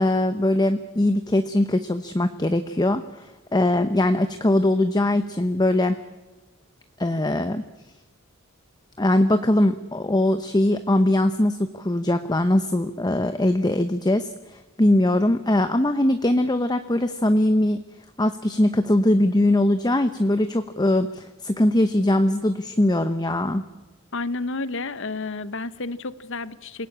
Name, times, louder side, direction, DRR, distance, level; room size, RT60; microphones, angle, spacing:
voice 1, 0.0-6.0 7.0-7.6 9.0-17.8 18.2-23.6, left 1 dB, 20° left, 9 dB, 0.9 m, -21 dB
voice 2, 24.1-26.9, left 3 dB, 65° left, 14 dB, 1.0 m, -30 dB
27.0 x 17.5 x 8.7 m, 1.2 s
head